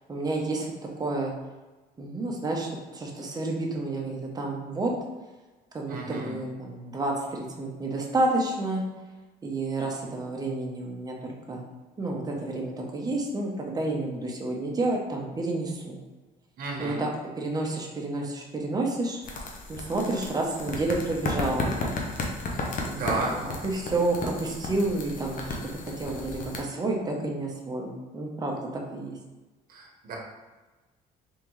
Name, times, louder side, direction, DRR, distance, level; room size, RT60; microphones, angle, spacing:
voice 1, 0.1-0.7 1.0-1.3 2.0-4.9 5.7-8.8 9.4-11.6 12.0-16.0 16.8-17.1 17.4-19.2 19.7-21.7 22.8-25.6 26.0-29.2, right 2 dB, 20° right, -1 dB, 0.8 m, -30 dB
voice 2, 5.9-6.3 16.6-17.1 22.5-23.3 29.7-30.2, right 3 dB, 60° right, -1 dB, 1.0 m, -33 dB
sound 1, 19.2-26.6, left 2 dB, 50° left, 0.8 m, -34 dB
3.7 x 3.3 x 3.1 m, 1.2 s
cardioid pair, 110°, 17 cm